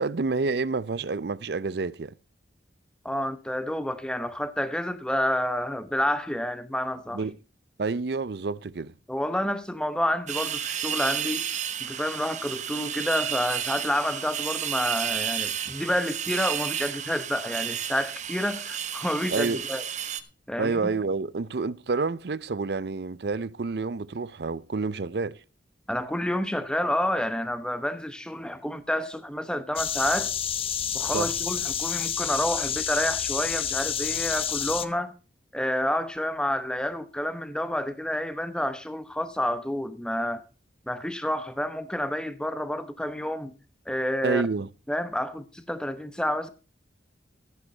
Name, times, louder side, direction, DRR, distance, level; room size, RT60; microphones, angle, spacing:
voice 1, 0.0-2.1 7.1-7.4 7.8-8.9 19.3-19.6 20.6-25.4 31.1-31.3 44.2-44.7, right 4 dB, 60° right, 0.5 m, -28 dB
voice 2, 3.0-7.2 9.1-11.4 11.8-19.8 20.5-20.9 25.9-30.3 30.9-35.1 35.5-40.4 40.9-43.5 43.9-44.4 44.9-46.5, left 1 dB, 5° left, 1.0 m, -29 dB
sound 1, 10.3-20.2, right 9 dB, 40° right, 1.0 m, -32 dB
sound 2, 29.8-34.9, left 9 dB, 30° left, 0.7 m, -29 dB
14.5 x 8.2 x 4.4 m
head